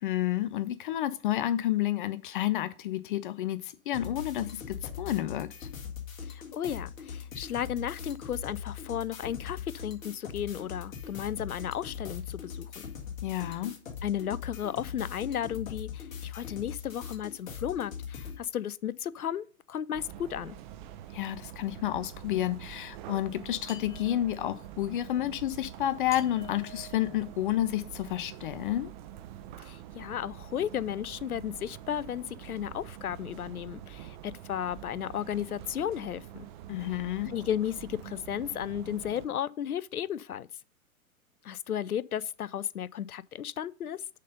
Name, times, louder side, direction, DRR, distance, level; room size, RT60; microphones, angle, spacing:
voice 1, 0.0-5.7 13.2-13.8 21.1-28.9 36.7-37.3, left 13 dB, 35° left, 0.5 m, -30 dB
sound 1, 3.9-18.4, left 7 dB, 60° left, 2.0 m, -41 dB
voice 2, 6.2-12.9 13.5-13.6 14.0-20.6 29.6-36.5 37.3-40.5 41.4-44.0, left 10 dB, 85° left, 0.6 m, -34 dB
sound 2, 19.9-39.3, right 11 dB, 35° right, 0.7 m, -46 dB
sound 3, 23.7-24.8 26.1-28.0, equal, 5° left, 2.2 m, -50 dB
6.5 x 5.2 x 5.2 m
figure-of-eight pair, 110°, 43 cm